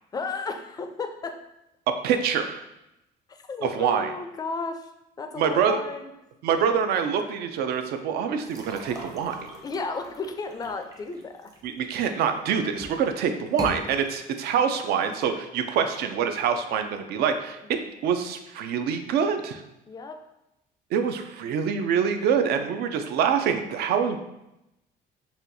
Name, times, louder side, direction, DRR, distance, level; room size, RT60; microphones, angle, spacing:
voice 1, 0.1-1.4 3.3-4.9 5.2-6.1 9.6-11.5 17.7-17.9 19.9-20.2, left 4 dB, 25° left, 6 dB, 0.3 m, -33 dB
voice 2, 2.0-2.6 3.7-4.1 5.4-5.8 6.4-9.5 11.6-17.6 18.0-19.6 20.9-24.2, right 7 dB, 70° right, 7 dB, 0.4 m, -25 dB
sound 1, 8.4-12.2 12.7-13.1 13.5-13.8, right 1 dB, 20° right, 0.6 m, -40 dB
4.2 x 2.3 x 2.6 m, 0.89 s
cardioid pair, 110°, 17 cm